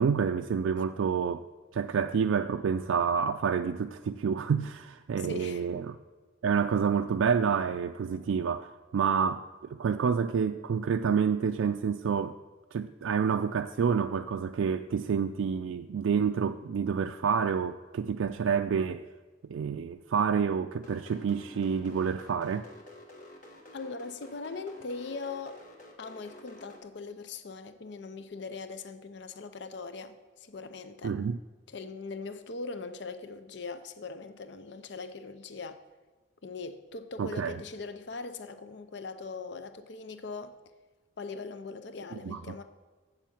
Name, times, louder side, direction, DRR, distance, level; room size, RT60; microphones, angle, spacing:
voice 1, 0.0-1.4 1.7-6.0 6.4-12.4 12.7-19.1 19.5-22.7 31.0-31.4 37.2-37.5 42.3-42.4, right 6 dB, 80° right, 0.3 m, -28 dB
voice 2, 5.2-5.7 23.7-25.6 26.0-31.2 31.7-35.8 36.4-40.6 41.2-42.6, left 4 dB, 60° left, 0.5 m, -40 dB
sound 1, 20.8-26.8, left 1 dB, 40° left, 1.3 m, -50 dB
7.8 x 7.4 x 7.1 m
head